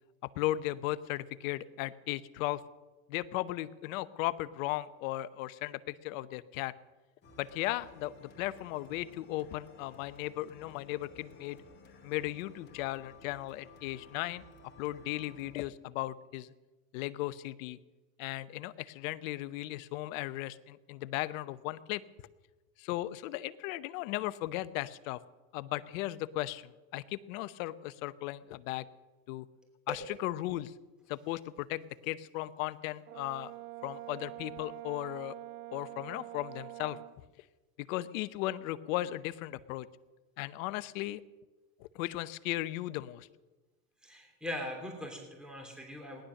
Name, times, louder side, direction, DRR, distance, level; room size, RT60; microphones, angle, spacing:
voice 1, 0.4-2.6 3.1-6.7 7.4-11.6 12.0-14.4 14.8-16.5 16.9-17.8 18.2-22.0 22.8-25.2 25.5-28.9 29.3-29.5 29.9-30.7 31.1-33.5 33.8-35.4 35.7-37.0 37.8-39.9 40.4-41.2 41.8-43.3, left 16 dB, 65° left, 15 dB, 0.9 m, -36 dB
sound 1, 7.2-15.6, left 2 dB, 25° left, 2.8 m, -56 dB
Brass instrument, 33.1-37.2, right 18 dB, 80° right, 0.7 m, -45 dB
voice 2, 44.0-46.2, left 1 dB, ahead, 1 dB, 3.1 m, -40 dB
18.0 x 11.5 x 6.5 m, 1.2 s
supercardioid pair, 115°, 44 cm